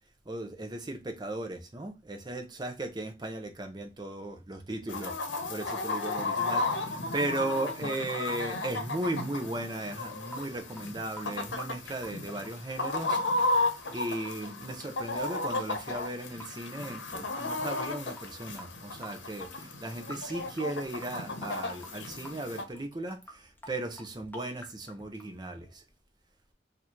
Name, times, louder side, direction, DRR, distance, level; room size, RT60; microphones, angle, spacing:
voice 1, 0.3-25.8, right 1 dB, 25° right, 0.7 m, -36 dB
Chicken rooster, 4.9-22.6, left 2 dB, 85° left, 0.8 m, -34 dB
Water tap faucet / Sink (filling or washing) / Drip, 10.0-26.0, equal, 10° left, 0.7 m, -51 dB
2.9 x 2.6 x 4.3 m
head